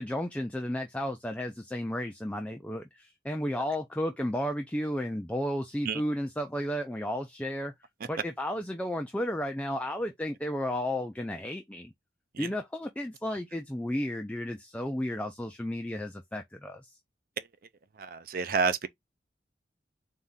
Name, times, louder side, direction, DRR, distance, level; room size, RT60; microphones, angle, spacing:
voice 1, 0.0-7.7 8.1-11.9 12.4-16.9, left 1 dB, 5° left, 0.4 m, -33 dB
voice 2, 18.0-18.9, right 5 dB, 55° right, 0.5 m, -29 dB
4.1 x 2.8 x 3.6 m
head